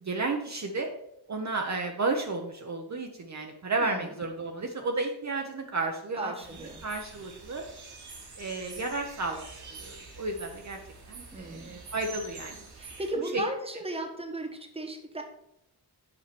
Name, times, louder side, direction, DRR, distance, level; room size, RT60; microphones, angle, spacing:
voice 1, 0.0-0.9 1.3-6.3 6.8-7.6 8.4-10.8 11.1-12.7 13.3-13.4, right 3 dB, 40° right, 2 dB, 1.0 m, -32 dB
voice 2, 6.2-6.8 11.3-11.7 12.8-15.2, right 1 dB, 15° right, 4 dB, 1.3 m, -36 dB
sound 1, 6.4-13.1, right 3 dB, 70° right, 2.1 m, -46 dB
6.9 x 4.9 x 6.8 m, 0.79 s
wide cardioid pair, 105°, 41 cm